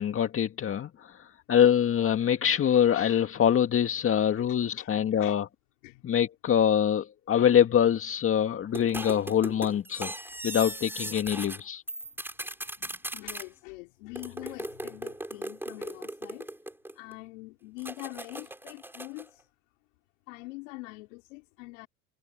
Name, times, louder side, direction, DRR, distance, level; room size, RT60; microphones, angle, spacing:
voice 1, 0.0-5.5 6.0-10.1 10.4-11.8, left 9 dB, 35° left, 2.0 m, -24 dB
voice 2, 4.8-5.3 5.8-6.0 10.2-10.3 12.6-12.8 13.0-16.5 16.9-19.5 20.3-21.9, left 24 dB, 75° left, 4.6 m, -44 dB
sound 1, 8.8-11.6 11.9-13.5 14.2-17.1 17.8-19.3, right 1 dB, 5° right, 6.6 m, -38 dB
supercardioid pair, 95°, 38 cm